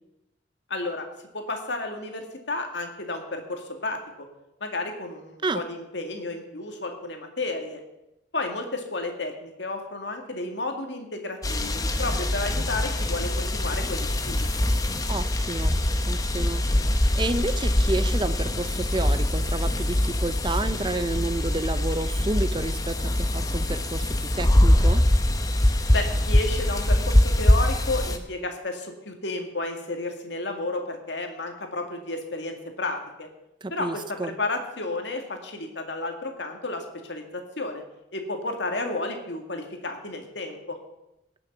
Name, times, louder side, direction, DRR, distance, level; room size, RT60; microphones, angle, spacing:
voice 1, 0.7-1.1 1.3-4.3 4.6-7.8 8.3-14.5 25.9-33.3 33.7-37.8 38.1-40.8, left 2 dB, 70° left, 4 dB, 2.1 m, -32 dB
sound 1, 11.4-28.2, left 1 dB, 20° left, 0.8 m, -23 dB
voice 2, 15.1-15.8 16.0-16.6 17.1-25.0 33.6-34.4, right 2 dB, 25° right, 12 dB, 0.5 m, -30 dB
18.0 x 6.9 x 6.1 m, 0.91 s
head